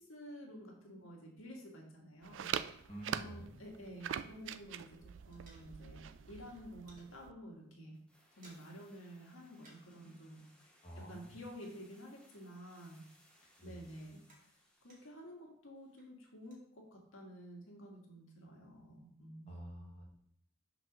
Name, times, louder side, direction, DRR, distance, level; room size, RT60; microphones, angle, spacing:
voice 1, 0.0-2.9 3.1-4.9 5.2-7.9 8.3-10.7 11.1-13.0 13.4-19.9, equal, 80° left, -1 dB, 1.8 m, -51 dB
sound 1, 2.2-7.3, right 8 dB, 60° right, 0.3 m, -43 dB
voice 2, 2.9-3.5 10.8-11.4 13.6-13.9 19.5-20.1, equal, 30° left, -3 dB, 1.4 m, -49 dB
sound 2, 4.1-4.7 5.0-6.1 6.4-7.1 7.6-7.7 8.0-8.9 9.2-10.0 10.3-12.6 12.9-15.3 15.7-16.7, right 2 dB, 40° right, 2.0 m, -67 dB
sound 3, 7.9-15.2 15.5-15.6, equal, 5° left, 1.0 m, -68 dB
5.9 x 4.2 x 6.0 m, 0.71 s
head